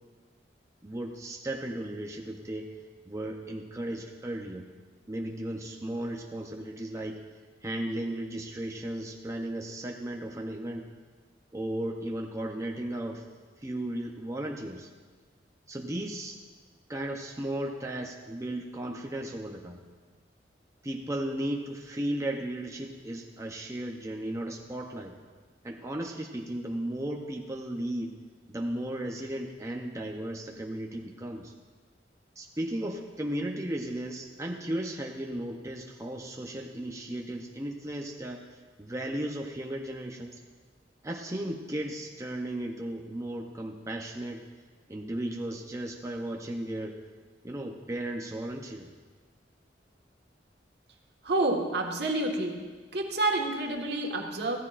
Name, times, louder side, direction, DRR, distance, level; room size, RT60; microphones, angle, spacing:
voice 1, 0.8-2.8 3.1-4.7 5.1-7.2 7.6-10.9 11.5-13.2 13.6-14.9 15.7-16.4 16.9-19.8 20.8-25.1 25.6-28.2 28.5-31.5 32.4-38.4 38.8-40.4 41.0-44.4 44.9-47.0 47.4-48.9, right 1 dB, 20° right, 0 dB, 0.7 m, -35 dB
voice 2, 51.2-52.6 52.9-54.6, right 2 dB, 65° right, 1 dB, 1.5 m, -28 dB
15.5 x 13.5 x 2.5 m, 1.4 s
head